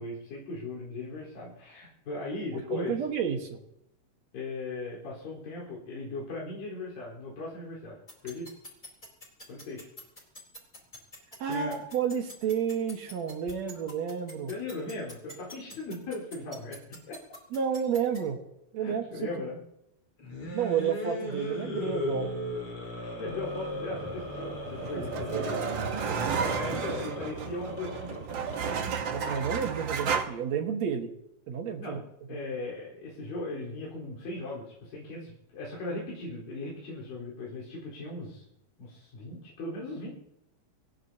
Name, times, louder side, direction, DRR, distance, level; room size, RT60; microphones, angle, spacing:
voice 1, 0.0-3.0 4.3-8.5 9.5-9.9 11.4-11.8 14.5-17.2 18.8-19.6 23.2-25.6 26.3-28.3 31.8-32.0 32.3-38.4 38.8-40.1, left 2 dB, 75° left, -5 dB, 6.0 m, -38 dB
voice 2, 2.7-3.6 11.4-14.5 17.5-18.4 18.7-19.3 20.5-22.3 24.9-25.0 25.3-25.5 26.1-26.6 29.1-31.1 31.5-32.0, right 7 dB, 55° right, 5 dB, 2.4 m, -31 dB
sound 1, 8.1-18.2, left 1 dB, 15° left, 3.8 m, -45 dB
sound 2, 20.2-29.0, equal, 40° left, 5.4 m, -36 dB
sound 3, 24.3-30.2, right 6 dB, 85° right, 1.0 m, -32 dB
26.0 x 18.0 x 2.9 m, 0.82 s
omnidirectional pair, 4.1 m